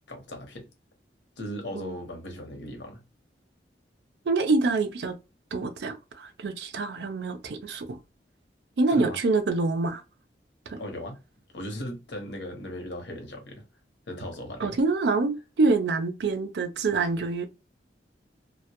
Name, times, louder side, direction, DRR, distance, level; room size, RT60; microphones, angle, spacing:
voice 1, 0.1-0.7 1.4-3.0 8.9-9.2 10.8-11.2 11.5-13.6 14.1-14.8, left 1 dB, 80° left, 0.8 m, -37 dB
voice 2, 4.3-5.2 5.5-8.0 8.8-10.0 10.7-10.8 14.6-17.5, right 3 dB, 70° right, 0.4 m, -26 dB
2.1 x 2.1 x 2.8 m
head